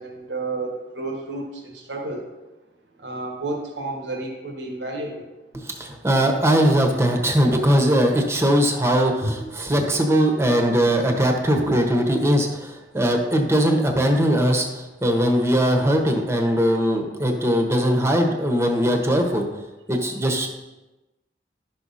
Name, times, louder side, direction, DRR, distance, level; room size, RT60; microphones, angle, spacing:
voice 1, 0.0-2.3 3.0-5.2 9.2-9.3 9.8-9.9 11.6-11.7, right 2 dB, 90° right, 1 dB, 1.6 m, -30 dB
voice 2, 5.5-19.4 19.9-20.5, equal, 15° right, 3 dB, 1.1 m, -20 dB
11.0 x 6.3 x 4.2 m, 1.0 s
head